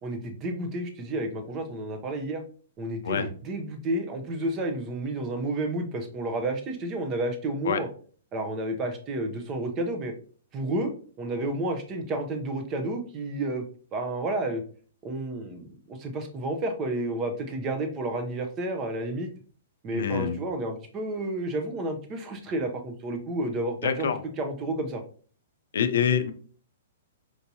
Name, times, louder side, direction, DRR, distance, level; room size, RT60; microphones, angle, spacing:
voice 1, 0.0-2.4 2.8-7.9 8.3-10.1 10.5-10.9 11.2-13.6 13.9-14.6 15.0-19.3 19.8-24.1 24.4-25.0, right 1 dB, 25° right, 6 dB, 0.5 m, -31 dB
voice 2, 19.9-20.4 23.8-24.2 25.7-26.3, left 7 dB, 75° left, 9 dB, 0.4 m, -25 dB
4.5 x 2.7 x 2.7 m, 0.43 s
hypercardioid pair, 155°, 0 cm